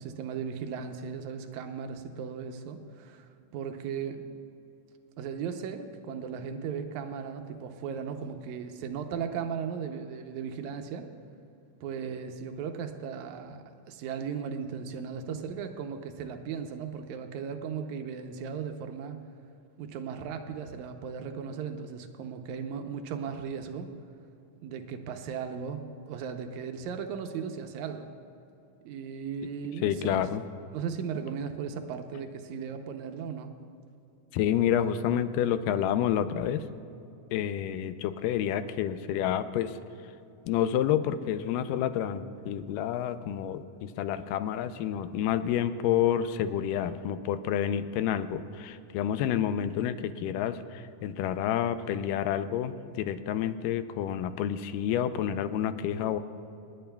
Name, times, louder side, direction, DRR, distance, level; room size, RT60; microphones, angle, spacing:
voice 1, 0.0-4.3 5.2-11.1 11.8-19.2 19.8-23.9 24.6-28.1 28.8-30.2 30.7-33.5, right 6 dB, 80° right, 6 dB, 1.7 m, -37 dB
voice 2, 29.8-30.4 34.3-36.6 37.3-39.8 40.5-56.2, left 10 dB, 80° left, 11 dB, 2.1 m, -29 dB
26.0 x 10.5 x 2.2 m, 2.7 s
omnidirectional pair, 4.0 m